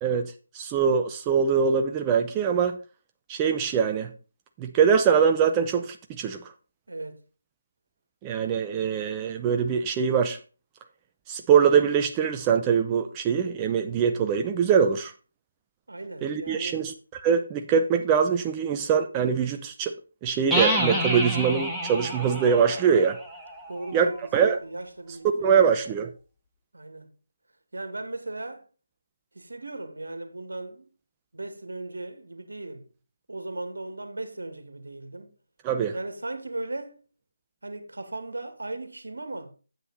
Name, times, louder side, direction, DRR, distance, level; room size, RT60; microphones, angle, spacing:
voice 1, 0.0-2.8 3.3-4.1 4.6-6.4 8.2-10.4 11.3-15.1 16.2-19.9 20.2-23.2 23.9-24.6 25.4-26.1 35.6-36.0, right 7 dB, 20° right, 0.6 m, -23 dB
voice 2, 6.9-7.2 15.9-16.8 23.7-25.6 26.7-27.1 27.7-28.6 29.3-30.9 31.3-32.9 33.3-35.3 35.9-37.0 37.6-39.5, right 2 dB, 75° right, 2.0 m, -37 dB
sound 1, 20.5-24.2, equal, ahead, 1.6 m, -29 dB
9.1 x 7.7 x 4.1 m
figure-of-eight pair, 155°, 0 cm